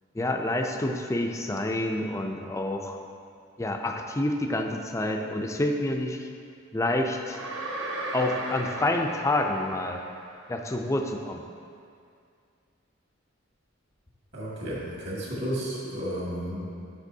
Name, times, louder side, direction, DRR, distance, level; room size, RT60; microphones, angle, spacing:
voice 1, 0.1-3.0 3.6-6.3 6.7-7.4 8.1-10.0 10.5-11.4, left 1 dB, 15° left, 3 dB, 0.4 m, -28 dB
sound 1, 7.3-10.4, right 1 dB, 75° right, 0.9 m, -36 dB
voice 2, 14.3-16.6, equal, 55° right, -6 dB, 1.9 m, -32 dB
9.7 x 6.8 x 2.7 m, 2.3 s
head